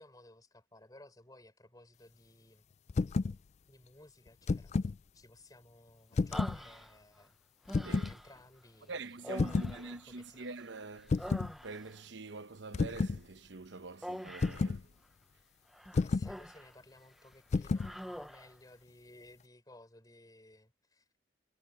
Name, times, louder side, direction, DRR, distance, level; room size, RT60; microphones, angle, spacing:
voice 1, 0.0-2.7 3.7-4.7 5.1-7.4 8.1-10.5 16.0-21.1, left 1 dB, 20° left, 4.2 m, -58 dB
sound 1, 2.9-3.4 4.3-5.0 6.1-6.6 7.7-8.1 9.4-9.8 11.1-11.5 12.7-13.2 14.4-14.8 15.9-16.3 17.5-17.9, left 4 dB, 35° left, 0.3 m, -31 dB
Human voice, 6.3-7.2 7.7-8.4 9.2-10.6 11.0-12.0 14.0-14.7 15.7-16.8 17.1-17.3 17.8-18.6, equal, ahead, 0.7 m, -45 dB
voice 2, 8.9-11.2 11.6-14.8, right 3 dB, 65° right, 0.9 m, -45 dB
head